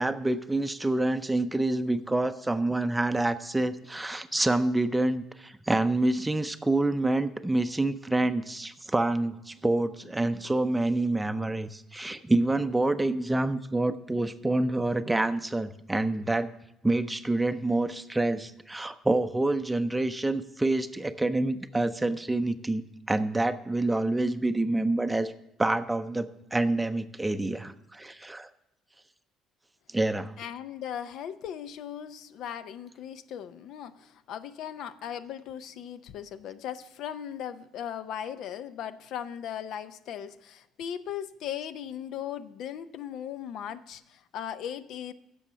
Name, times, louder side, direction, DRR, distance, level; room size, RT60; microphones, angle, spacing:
voice 1, 0.0-16.5 16.8-25.3 25.6-28.5 29.9-30.3, right 2 dB, 10° right, 11 dB, 0.5 m, -27 dB
voice 2, 30.4-45.1, left 9 dB, 70° left, 13 dB, 0.5 m, -38 dB
10.0 x 7.0 x 6.1 m, 0.85 s
cardioid pair, 115°, 0 cm